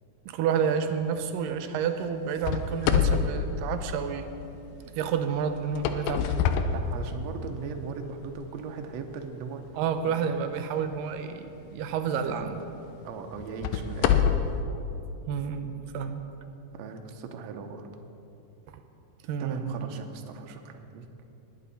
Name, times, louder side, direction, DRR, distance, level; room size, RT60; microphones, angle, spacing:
voice 1, 0.3-4.3 4.9-6.4 9.7-12.6 15.3-16.2 19.2-19.9, right 7 dB, 90° right, 8 dB, 2.3 m, -30 dB
sound 1, 2.4-4.4 5.6-7.5 8.2-8.3 9.0-9.1 11.7-11.9 12.4-12.5 13.4-14.6, left 7 dB, 85° left, 2.3 m, -26 dB
voice 2, 6.7-9.6 12.1-12.5 13.0-14.2 16.7-17.9 19.4-21.1, right 5 dB, 75° right, 4 dB, 1.7 m, -38 dB
19.5 x 8.5 x 4.2 m, 2.8 s
omnidirectional pair, 3.9 m